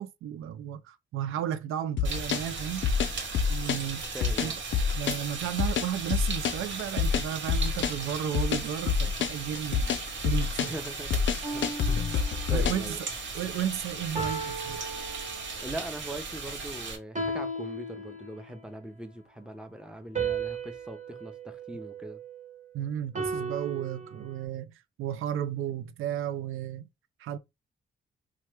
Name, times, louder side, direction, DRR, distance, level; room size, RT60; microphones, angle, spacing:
voice 1, 0.0-2.9 3.5-4.1 4.4-4.5 4.9-9.9 10.2-10.7 12.5-13.0 13.3-14.8 22.7-26.9 27.2-27.4, right 10 dB, 85° right, 0.4 m, -33 dB
sound 1, 2.0-12.9, left 6 dB, 65° left, 0.4 m, -27 dB
sound 2, 2.0-17.0, right 4 dB, 65° right, 1.1 m, -37 dB
voice 2, 4.1-4.5 10.6-11.2 11.5-11.6 12.5-13.0 15.6-22.2, right 1 dB, 5° right, 0.7 m, -40 dB
sound 3, 11.4-12.7 14.2-15.8 17.2-18.6 20.2-22.6 23.2-24.5, right 3 dB, 35° right, 1.2 m, -36 dB
2.8 x 2.3 x 3.2 m
cardioid pair, 70°, 21 cm